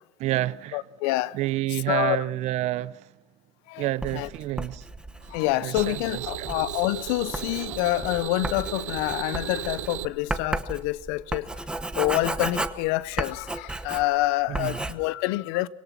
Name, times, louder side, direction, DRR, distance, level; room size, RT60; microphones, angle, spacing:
voice 1, 0.2-0.8 1.3-3.1 3.8-4.9 5.6-6.5 14.5-14.8, right 16 dB, 45° right, 0.6 m, -29 dB
voice 2, 0.7-1.3 1.9-2.2 3.7-3.9 4.1-4.3 5.3-11.5 12.0-15.7, left 18 dB, 65° left, 0.7 m, -27 dB
Writing, 4.0-14.3 14.5-14.9, right 2 dB, 5° right, 1.0 m, -34 dB
sound 1, 5.2-10.1, right 13 dB, 85° right, 0.8 m, -36 dB
25.0 x 17.5 x 6.0 m
supercardioid pair, 110°, 16 cm